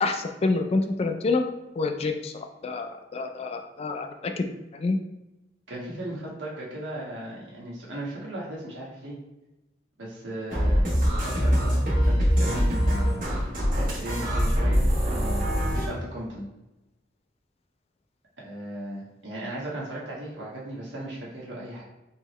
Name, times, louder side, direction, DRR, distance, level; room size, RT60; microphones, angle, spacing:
voice 1, 0.0-1.4 1.8-2.3 2.6-5.0, left 3 dB, 35° left, 6 dB, 0.3 m, -27 dB
voice 2, 5.7-9.2 10.0-13.2 13.8-16.4 18.4-21.8, right 1 dB, 80° right, -5 dB, 1.3 m, -37 dB
sound 1, 10.5-15.9, equal, 50° right, 1.1 m, -23 dB
3.7 x 3.1 x 3.0 m, 0.97 s
head